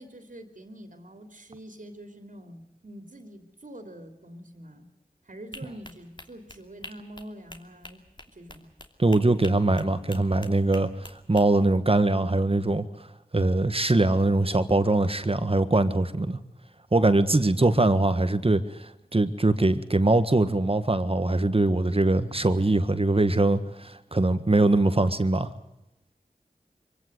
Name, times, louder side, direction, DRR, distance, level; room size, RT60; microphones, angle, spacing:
voice 1, 0.0-4.9 5.2-8.0 8.3-8.7, right 1 dB, 60° right, 6 dB, 3.0 m, -45 dB
sound 1, 5.5-11.4, left 1 dB, 30° left, 2.9 m, -46 dB
voice 2, 9.0-12.9 13.3-16.4 16.9-25.5, right 2 dB, 40° right, 11 dB, 1.6 m, -22 dB
24.5 x 17.0 x 8.0 m, 0.92 s
wide cardioid pair, 45°, 15 cm